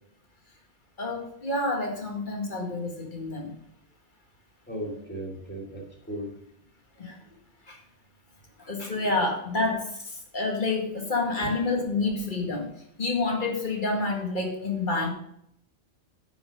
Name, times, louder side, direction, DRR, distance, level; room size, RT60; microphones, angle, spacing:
voice 1, 1.0-3.6 7.0-7.2 7.7-7.8 8.6-12.7 13.0-15.1, left 3 dB, 45° left, 1 dB, 2.0 m, -28 dB
voice 2, 4.7-6.4 8.9-9.1 11.4-11.8, right 1 dB, 10° left, -2 dB, 2.3 m, -37 dB
9.2 x 6.2 x 5.2 m, 0.73 s
omnidirectional pair, 1.2 m